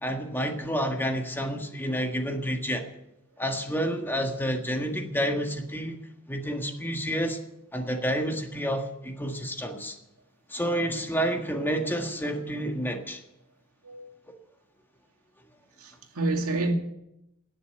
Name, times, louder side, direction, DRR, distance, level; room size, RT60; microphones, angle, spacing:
voice 1, 0.0-2.9 3.4-6.0 6.3-7.4 7.7-10.0 10.5-13.2 14.3-14.4, equal, 10° left, 1.6 m, -29 dB
voice 2, 15.8-16.7, right 2 dB, 80° right, 2.3 m, -28 dB
19.0 x 6.9 x 9.0 m
head